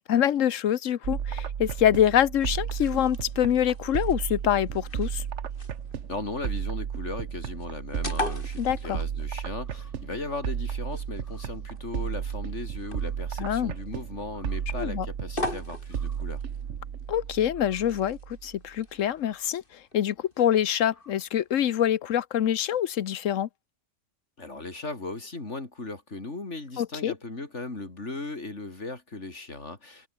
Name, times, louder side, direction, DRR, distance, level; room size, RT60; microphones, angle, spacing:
voice 1, 0.0-5.2 8.6-9.0 13.4-13.7 14.8-15.1 17.1-23.5 26.8-27.1, left 10 dB, 90° left, 1.2 m, -25 dB
sound 1, 1.0-18.7, right 8 dB, 65° right, 1.3 m, -34 dB
sound 2, 2.2-21.9, left 2 dB, 45° left, 4.4 m, -43 dB
voice 2, 6.1-16.4 24.4-30.1, left 2 dB, 65° left, 4.0 m, -37 dB
omnidirectional pair, 1.3 m